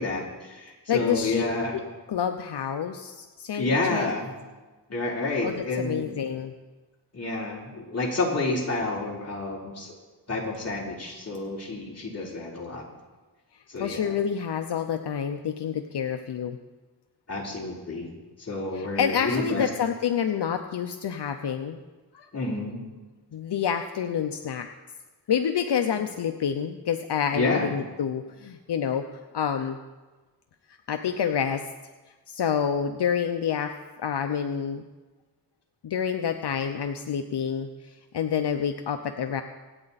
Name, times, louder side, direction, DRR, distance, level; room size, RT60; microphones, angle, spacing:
voice 1, 0.0-1.7 3.5-4.3 4.9-6.1 7.1-9.9 10.3-12.8 13.7-14.2 17.3-18.1 18.4-19.7 22.3-22.8 27.3-27.7, left 2 dB, 35° left, -4 dB, 3.5 m, -29 dB
voice 2, 0.9-1.4 1.7-1.8 2.1-4.1 5.4-6.5 13.8-16.6 18.7-21.8 22.1-22.3 23.3-24.7 25.3-29.0 29.3-29.8 30.9-31.6 32.3-33.7 34.0-34.8 35.8-37.7 38.1-39.4, left 8 dB, 75° left, 6 dB, 0.8 m, -28 dB
25.5 x 8.9 x 4.1 m, 1.2 s
wide cardioid pair, 165°, 41 cm